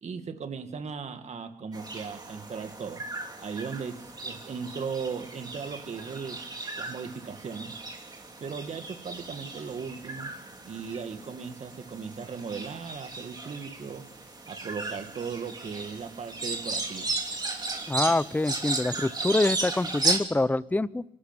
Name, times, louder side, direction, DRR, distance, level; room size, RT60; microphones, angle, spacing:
voice 1, 0.0-3.1 3.4-6.5 6.7-7.8 8.4-10.3 10.6-14.1 14.5-17.1, right 5 dB, 55° right, 7 dB, 2.2 m, -37 dB
sound 1, 1.7-20.2, right 3 dB, 30° right, 3.2 m, -35 dB
voice 2, 17.9-21.0, left 2 dB, 10° left, 17 dB, 0.7 m, -26 dB
24.0 x 13.0 x 9.0 m, 0.83 s
cardioid pair, 90°, 14 cm